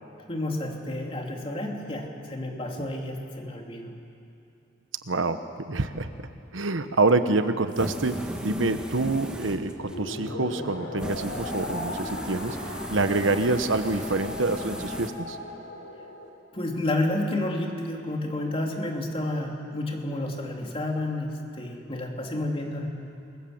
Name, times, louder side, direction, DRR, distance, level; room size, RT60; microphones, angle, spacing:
voice 1, 0.3-3.9 16.5-22.9, left 1 dB, 30° left, 1 dB, 2.9 m, -30 dB
voice 2, 5.1-6.1 6.5-12.6 12.9-15.4, right 3 dB, 70° right, 9 dB, 1.1 m, -26 dB
sound 1, 7.7-10.0 11.0-15.1, equal, 5° right, 1.8 m, -36 dB
sound 2, 9.8-16.3, left 2 dB, 80° left, 4.2 m, -37 dB
28.5 x 22.0 x 7.9 m, 2.7 s
head